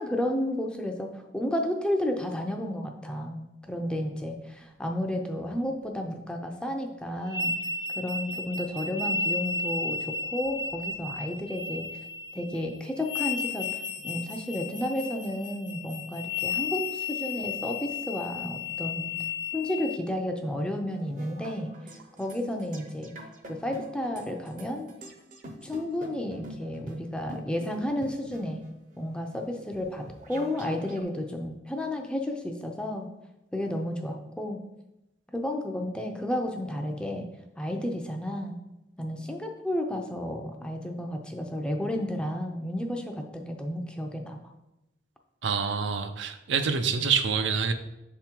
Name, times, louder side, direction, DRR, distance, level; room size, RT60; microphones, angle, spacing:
voice 1, 0.0-7.6 8.0-11.9 12.3-19.1 19.5-23.1 23.5-24.9 25.6-28.6 29.0-33.1 33.5-34.6 35.3-37.3 37.6-38.6 39.0-44.4, left 1 dB, 5° left, 2 dB, 0.5 m, -32 dB
sound 1, 7.3-20.0, left 4 dB, 75° left, 0.6 m, -33 dB
sound 2, 20.9-31.0, right 1 dB, 45° right, 0.7 m, -45 dB
voice 2, 45.4-47.7, right 6 dB, 85° right, 8 dB, 0.5 m, -26 dB
7.1 x 3.7 x 4.5 m, 0.95 s
head